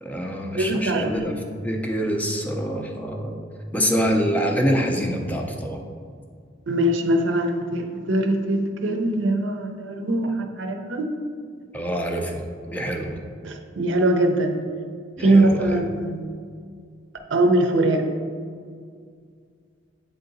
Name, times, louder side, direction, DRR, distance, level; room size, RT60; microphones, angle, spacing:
voice 1, 0.0-1.4 1.6-3.4 3.7-5.8 11.7-13.2 15.2-15.9, equal, 10° left, 2 dB, 0.5 m, -25 dB
voice 2, 0.5-1.2 6.7-11.1 13.4-14.6 15.2-16.2 17.3-18.1, right 1 dB, 70° right, 5 dB, 0.6 m, -22 dB
7.8 x 3.8 x 3.9 m, 2.1 s
head